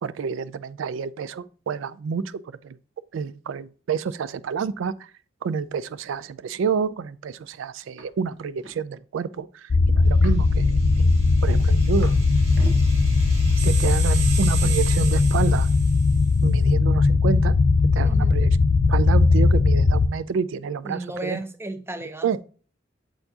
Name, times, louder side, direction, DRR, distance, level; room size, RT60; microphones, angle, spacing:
voice 1, 0.0-2.8 3.1-5.1 5.4-11.2 11.4-12.1 13.6-15.7 16.4-17.5 17.9-18.5 18.9-21.4 22.2-22.4, right 6 dB, 85° right, 0.3 m, -28 dB
sound 1, 8.0-8.1 8.4-8.8 10.1-10.5 11.0-12.2 12.5-12.8 13.5-13.7, right 3 dB, 70° right, 1.4 m, -42 dB
sound 2, 9.7-20.1, left 3 dB, 40° left, 0.4 m, -19 dB
sound 3, 10.4-16.4, right 7 dB, 35° right, 1.3 m, -36 dB
voice 2, 20.8-22.4, right 1 dB, 15° right, 0.6 m, -34 dB
7.7 x 4.4 x 2.8 m
head